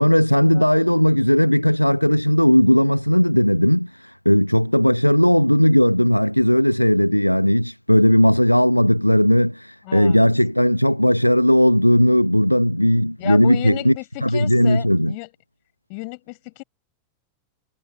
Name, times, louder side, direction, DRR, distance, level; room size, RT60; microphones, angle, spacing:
voice 1, 0.0-13.9 14.2-15.1, equal, 90° left, 1.0 m, -17 dB
voice 2, 0.5-0.8 9.8-10.3 13.2-15.3 15.9-16.6, left 36 dB, 45° left, 5.6 m, -33 dB
figure-of-eight pair, 90°, 0 cm